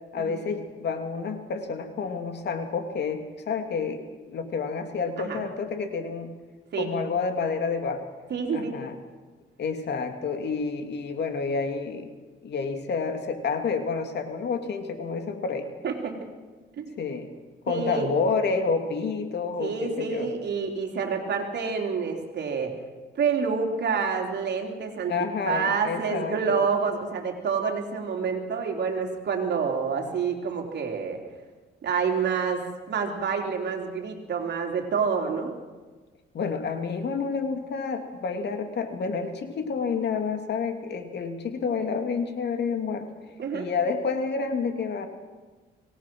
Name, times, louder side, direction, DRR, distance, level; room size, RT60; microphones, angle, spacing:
voice 1, 0.1-4.0 4.3-6.3 6.8-8.1 8.5-9.0 9.6-12.1 12.4-15.7 17.0-17.3 17.7-20.3 25.1-26.6 36.3-43.1 43.5-45.1, left 5 dB, 60° left, 6 dB, 2.7 m, -29 dB
voice 2, 8.3-8.7 15.8-16.1 16.8-16.9 17.7-18.1 19.6-22.8 23.1-25.1 25.4-31.2 31.8-35.5 43.4-43.7, right 5 dB, 60° right, 2 dB, 3.5 m, -28 dB
25.0 x 18.5 x 6.2 m, 1.3 s
cardioid pair, 90°, 20 cm